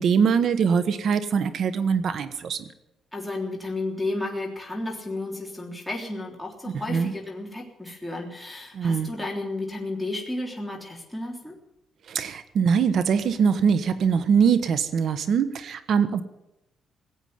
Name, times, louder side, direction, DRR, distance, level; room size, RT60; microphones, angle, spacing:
voice 1, 0.0-2.6 6.9-7.1 8.7-9.1 12.1-16.2, right 6 dB, 65° right, 12 dB, 1.4 m, -22 dB
voice 2, 3.1-11.5, left 2 dB, 5° left, -1 dB, 3.6 m, -32 dB
18.0 x 8.3 x 9.6 m, 0.90 s
cardioid pair, 90°, 0 cm